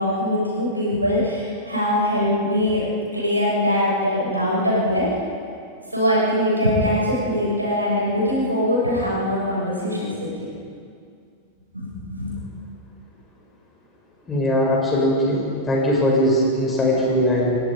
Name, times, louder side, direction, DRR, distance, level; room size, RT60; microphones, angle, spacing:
voice 1, 0.0-2.8 3.1-5.2 5.9-10.5 11.7-12.3, left 1 dB, 85° right, -4 dB, 7.2 m, -22 dB
voice 2, 14.3-17.6, equal, 20° left, -3 dB, 7.3 m, -20 dB
29.5 x 18.5 x 5.3 m, 2.3 s
figure-of-eight pair, 90°, 0 cm